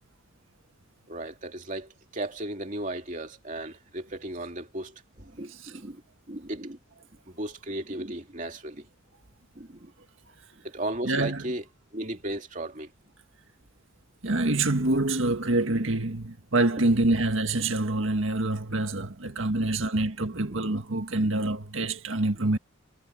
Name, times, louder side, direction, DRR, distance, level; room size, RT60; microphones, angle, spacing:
voice 1, 1.1-6.0 6.3-6.8 7.3-8.9 9.5-9.9 10.6-11.6 11.9-12.9 19.8-19.9, right 1 dB, 40° right, 2.6 m, -35 dB
voice 2, 11.0-11.4 14.2-22.6, right 2 dB, 85° right, 1.7 m, -26 dB
head